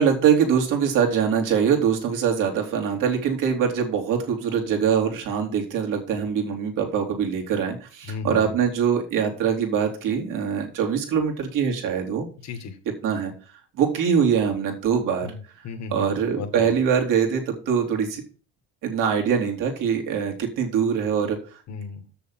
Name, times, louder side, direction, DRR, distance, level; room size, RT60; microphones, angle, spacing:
voice 1, 0.0-12.3 13.0-13.3 13.7-15.3 15.9-18.2 18.8-21.4, right 7 dB, 65° right, 1 dB, 3.3 m, -23 dB
voice 2, 8.1-8.6 12.4-12.8 15.2-16.8 21.7-22.0, left 5 dB, 55° left, 6 dB, 2.0 m, -35 dB
7.1 x 6.9 x 7.5 m, 0.38 s
supercardioid pair, 80°, 33 cm